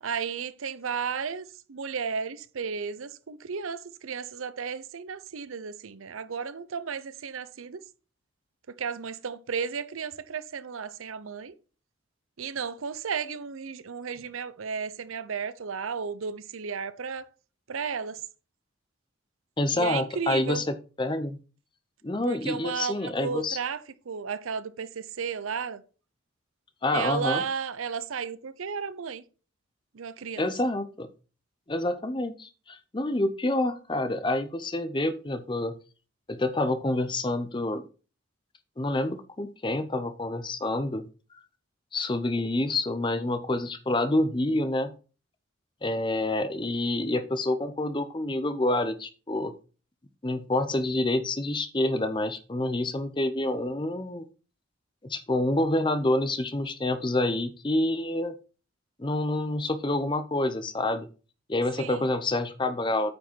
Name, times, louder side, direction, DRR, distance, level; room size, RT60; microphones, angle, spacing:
voice 1, 0.0-7.8 8.8-11.6 12.4-17.3 17.7-18.2 19.7-20.6 22.3-25.8 26.9-29.2 29.9-30.5 61.8-62.1, right 6 dB, 80° right, 0.6 m, -33 dB
voice 2, 19.6-21.4 22.0-23.6 26.8-27.4 30.4-31.1 31.7-35.8 36.3-37.9 38.8-41.1 41.9-44.9 45.8-49.5 50.2-54.2 55.1-58.3 59.0-61.1 61.5-63.1, left 1 dB, 25° left, 0.6 m, -27 dB
9.2 x 5.0 x 4.5 m
head